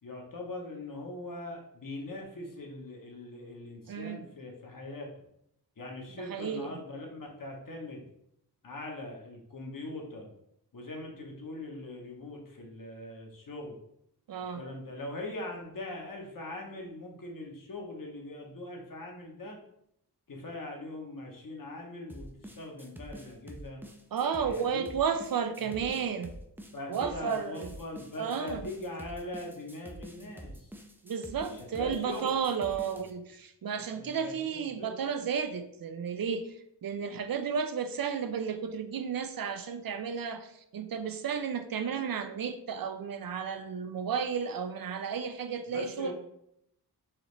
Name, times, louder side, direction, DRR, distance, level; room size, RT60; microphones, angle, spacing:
voice 1, 0.0-5.1 5.8-8.0 8.6-10.3 10.7-13.7 14.5-19.6 20.3-23.8 24.3-24.9 25.6-26.0 26.7-30.7 31.5-32.3 33.7-35.0 45.7-46.1, left 2 dB, 55° left, 1 dB, 1.0 m, -41 dB
voice 2, 3.9-4.3 6.2-6.8 14.3-14.6 24.1-26.3 26.9-27.7 28.2-28.6 31.0-36.6 36.8-46.1, right 6 dB, 60° right, 8 dB, 0.5 m, -33 dB
sound 1, 22.1-33.1, right 1 dB, 5° right, 0.4 m, -46 dB
4.7 x 3.0 x 3.2 m, 0.77 s
wide cardioid pair, 95°, 39 cm